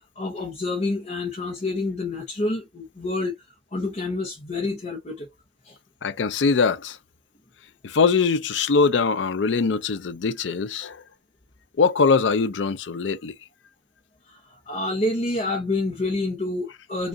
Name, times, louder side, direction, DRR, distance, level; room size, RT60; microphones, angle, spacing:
voice 1, 0.2-3.3 3.7-5.3 5.6-5.8 14.3-17.1, left 2 dB, 40° left, 0.8 m, -28 dB
voice 2, 6.0-7.0 7.8-11.0 11.8-13.3, left 4 dB, 75° left, 0.5 m, -22 dB
5.0 x 2.4 x 2.6 m
head